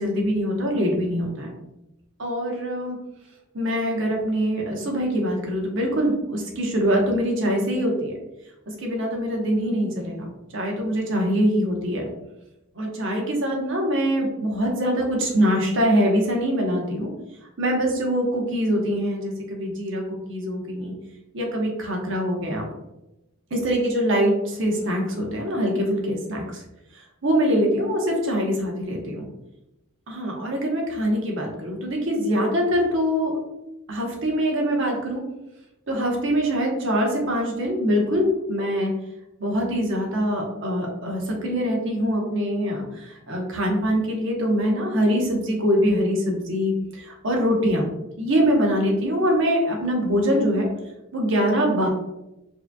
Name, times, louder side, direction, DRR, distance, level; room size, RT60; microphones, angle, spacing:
voice 1, 0.0-1.5 2.2-3.0 3.5-8.1 8.8-12.1 12.8-17.1 17.6-20.9 21.3-22.7 23.5-26.6 27.2-29.3 30.1-33.3 33.9-35.2 35.9-38.9 39.4-47.9 48.2-50.7 51.1-51.9, equal, 65° right, 0 dB, 1.0 m, -23 dB
4.8 x 2.8 x 2.2 m, 0.92 s
head